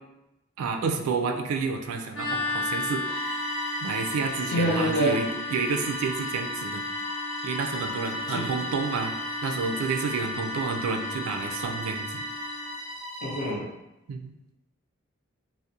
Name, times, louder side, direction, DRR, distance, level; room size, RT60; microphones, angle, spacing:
voice 1, 0.6-3.0 3.8-6.8 7.4-9.2 9.4-12.3 14.1-14.3, right 5 dB, 90° right, 5 dB, 0.3 m, -30 dB
sound 1, 2.1-12.7, left 3 dB, 80° left, 0.8 m, -34 dB
Bowed string instrument, 3.0-13.6, equal, ahead, 0.8 m, -37 dB
voice 2, 4.5-5.1 8.3-8.5 13.2-13.6, equal, 50° left, -4 dB, 0.6 m, -26 dB
2.3 x 2.0 x 2.7 m, 0.95 s
head